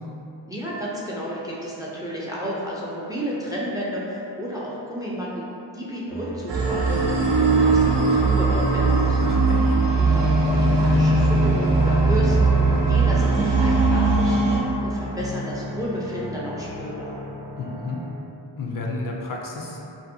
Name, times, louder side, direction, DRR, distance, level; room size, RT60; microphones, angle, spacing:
voice 1, 0.5-5.4 5.7-7.0 7.4-9.2 10.0-12.5 12.9-17.1, equal, 10° right, -6 dB, 0.4 m, -31 dB
sound 1, 6.1-18.1, equal, 80° left, 0.9 m, -35 dB
sound 2, 6.5-14.6, right 3 dB, 75° right, 0.6 m, -19 dB
voice 2, 9.2-9.7 17.6-18.0 18.6-19.8, left 2 dB, 50° left, -1 dB, 0.4 m, -31 dB
2.6 x 2.5 x 2.6 m, 2.9 s
cardioid pair, 70°, 43 cm